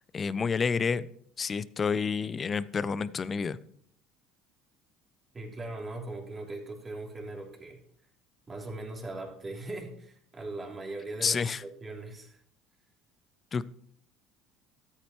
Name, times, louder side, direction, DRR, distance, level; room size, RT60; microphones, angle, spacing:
voice 1, 0.1-1.1 1.4-3.6 11.2-11.6 13.5-13.6, left 5 dB, 35° left, 18 dB, 0.5 m, -29 dB
voice 2, 5.3-7.8 8.5-12.4, right 2 dB, 25° right, 0 dB, 3.1 m, -40 dB
13.5 x 8.7 x 3.1 m, 0.64 s
hypercardioid pair, 70°, 0 cm